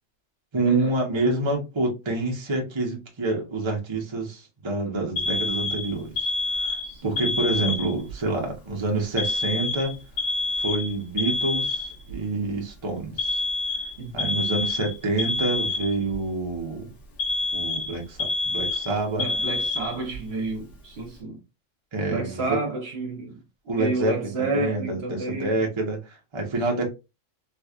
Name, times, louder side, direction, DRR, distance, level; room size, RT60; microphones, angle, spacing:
voice 1, 0.5-6.3 6.6-10.0 10.6-13.4 14.1-16.9 17.5-19.3 21.9-22.6 23.7-26.9, right 2 dB, 25° right, 0.8 m, -27 dB
Alarm, 5.2-8.1 9.2-12.1 13.2-16.2 17.2-20.2, left 3 dB, 65° left, 1.4 m, -27 dB
voice 2, 6.8-7.3 14.0-14.4 19.2-21.4 22.1-23.4 23.8-25.6 26.7-26.9, right 3 dB, 55° right, 1.2 m, -31 dB
3.4 x 3.1 x 2.4 m
omnidirectional pair, 1.3 m